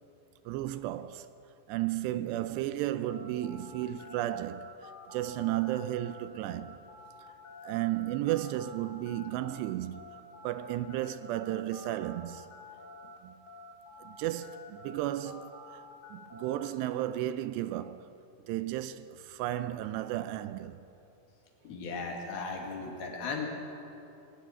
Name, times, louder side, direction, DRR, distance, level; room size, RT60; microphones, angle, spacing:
voice 1, 0.5-1.3 1.7-4.7 5.1-6.8 7.6-10.0 10.4-12.5 13.2-13.3 14.0-15.8 16.1-18.1 18.5-20.8, right 14 dB, 80° right, 2.7 m, -33 dB
sound 1, 3.0-13.2 13.5-16.7, left 2 dB, 30° left, 1.9 m, -49 dB
voice 2, 21.7-23.5, left 4 dB, 65° left, 3.8 m, -36 dB
22.5 x 13.0 x 9.1 m
omnidirectional pair, 5.0 m